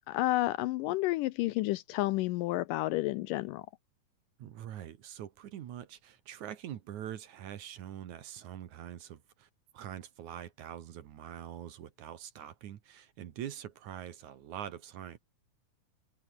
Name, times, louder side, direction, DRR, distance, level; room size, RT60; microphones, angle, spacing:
voice 1, 0.1-3.6, left 18 dB, 80° left, 2.0 m, -30 dB
voice 2, 4.4-9.5 9.7-15.2, right 10 dB, 65° right, 2.5 m, -44 dB
omnidirectional pair, 4.2 m